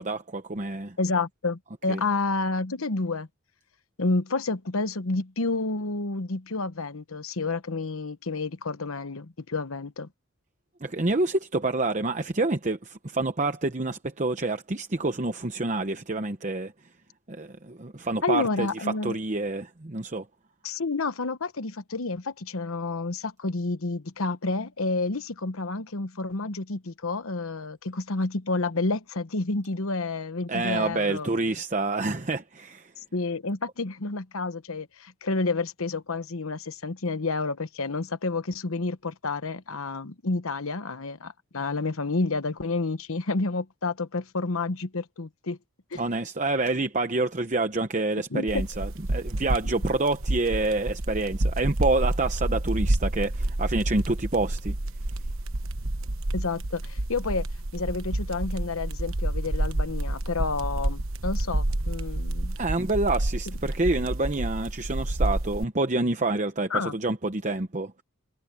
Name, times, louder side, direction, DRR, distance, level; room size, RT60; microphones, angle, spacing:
voice 1, 0.0-1.0 1.9-2.0 10.8-16.7 17.3-20.3 30.5-32.9 45.9-54.8 62.6-68.0, right 2 dB, 35° right, 0.9 m, -27 dB
voice 2, 1.0-3.3 4.0-10.1 18.2-19.2 20.6-31.5 33.1-45.6 45.9-46.0 48.3-48.6 56.3-57.5 57.7-62.6 66.7-66.9, left 3 dB, 70° left, 1.1 m, -30 dB
sound 1, 48.5-65.6, right 1 dB, 60° right, 1.2 m, -29 dB
head